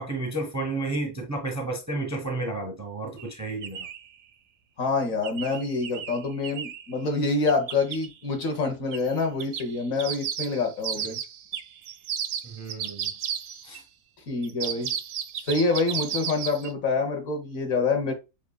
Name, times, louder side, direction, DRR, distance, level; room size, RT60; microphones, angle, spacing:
voice 1, 0.0-3.9 12.4-13.1 13.6-13.8, right 2 dB, 15° right, 0.7 m, -31 dB
sound 1, 3.2-3.3 3.6-4.1 5.2-6.9 7.5-8.1 8.9-9.1 9.4-13.8 14.4-16.7, right 8 dB, 70° right, 0.9 m, -33 dB
voice 2, 4.8-11.2 14.3-14.9 15.5-18.1, left 3 dB, 65° left, 1.5 m, -26 dB
7.1 x 2.5 x 2.3 m
omnidirectional pair, 1.5 m